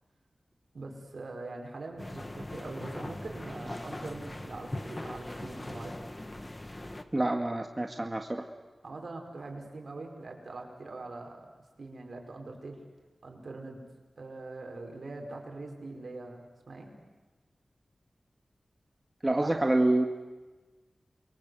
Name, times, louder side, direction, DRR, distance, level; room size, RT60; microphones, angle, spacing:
voice 1, 0.7-6.0 8.8-11.4 11.8-12.8 13.2-13.8 14.2-16.9 19.4-19.6, right 2 dB, 70° right, 2 dB, 4.9 m, -42 dB
sound 1, 2.0-7.0, left 1 dB, 30° left, 1.8 m, -40 dB
voice 2, 7.1-8.4 19.2-20.0, right 2 dB, 30° right, 4 dB, 1.9 m, -27 dB
28.0 x 23.0 x 7.8 m, 1.3 s
cardioid pair, 45°, 0 cm